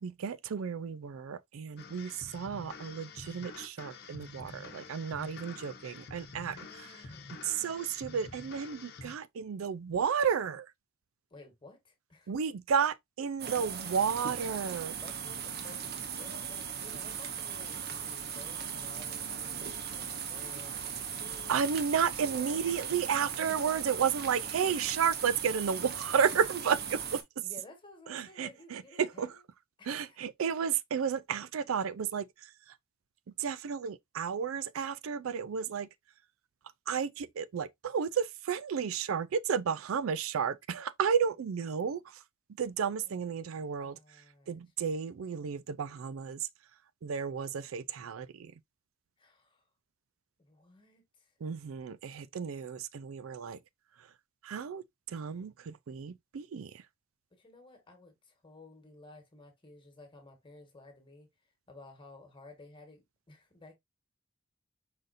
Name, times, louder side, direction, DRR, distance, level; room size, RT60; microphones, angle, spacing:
voice 1, 0.0-6.9 7.4-10.7 12.3-15.0 21.5-27.4 28.1-29.4 29.9-32.8 33.4-35.9 36.9-42.2 42.6-46.5 47.0-48.5 51.4-53.6 54.0-54.1 54.4-56.8, right 7 dB, 75° right, 0.4 m, -32 dB
sound 1, 1.8-9.1, left 4 dB, 55° left, 0.9 m, -48 dB
voice 2, 5.4-5.8 6.5-7.5 11.3-12.3 15.0-15.9 16.2-21.7 22.2-22.8 27.4-29.4 29.8-30.2 42.8-44.6 49.2-49.6 50.4-51.3 57.3-61.3 61.7-63.8, left 2 dB, 25° left, 1.4 m, -54 dB
sound 2, 13.4-27.2, right 7 dB, 50° right, 0.8 m, -38 dB
5.1 x 4.0 x 2.6 m
head